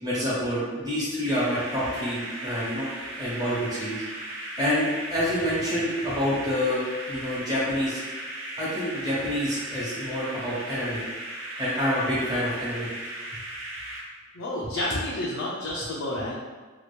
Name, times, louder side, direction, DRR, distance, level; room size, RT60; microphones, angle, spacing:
voice 1, 0.0-2.9 3.1-4.0 4.6-8.0 8.6-11.0 11.6-12.9, equal, 20° right, -8 dB, 0.9 m, -27 dB
sound 1, 1.2-14.0, right 1 dB, 85° right, 0.6 m, -37 dB
voice 2, 14.3-16.3, left 1 dB, 85° left, -5 dB, 0.5 m, -30 dB
2.8 x 2.3 x 3.3 m, 1.4 s
head